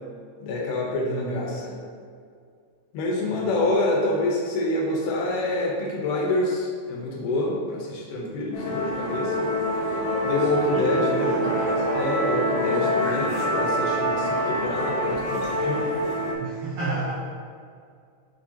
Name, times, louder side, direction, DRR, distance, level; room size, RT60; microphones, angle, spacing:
voice 1, 0.4-1.7 2.9-9.5 10.2-11.4 11.9-15.8, left 2 dB, 85° left, -2 dB, 2.6 m, -27 dB
voice 2, 1.1-1.4 3.3-3.7 10.7-11.6 12.7-12.9 16.4-17.1, right 3 dB, 65° right, -8 dB, 1.5 m, -33 dB
Musical instrument, 8.5-16.3, equal, 55° left, 2.1 m, -25 dB
7.3 x 5.2 x 2.9 m, 2.2 s
omnidirectional pair, 3.6 m